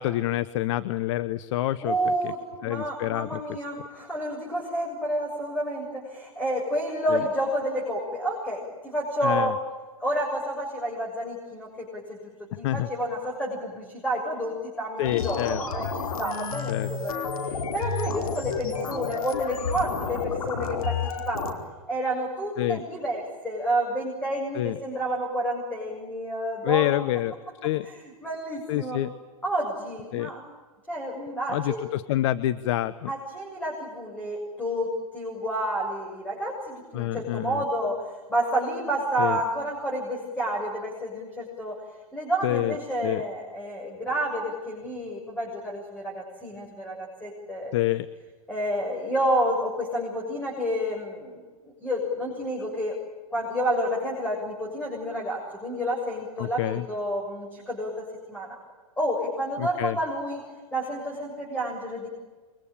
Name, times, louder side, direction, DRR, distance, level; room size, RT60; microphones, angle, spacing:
voice 1, 0.0-2.3 2.6-3.4 7.1-7.2 9.2-9.5 12.6-12.9 15.0-15.6 16.7-16.9 22.6-22.8 24.5-24.8 26.6-27.3 27.6-27.9 28.7-29.1 30.1-30.3 31.5-33.1 36.9-37.6 39.2-39.4 42.4-42.8 43.0-43.2 47.7-48.1 56.4-56.8 59.6-60.0, left 15 dB, 55° left, 15 dB, 1.0 m, -27 dB
voice 2, 1.8-9.5 10.0-21.5 21.9-27.0 27.8-29.0 29.4-30.4 30.9-31.9 33.1-38.0 38.3-41.8 42.1-47.7 48.5-51.4 51.8-53.0 53.3-58.6 59.0-60.4 60.7-62.1, equal, 10° left, -1 dB, 7.2 m, -30 dB
sound 1, 15.0-21.5, left 5 dB, 80° left, 4.7 m, -31 dB
27.5 x 24.0 x 8.9 m, 1.3 s
hypercardioid pair, 125°, 18 cm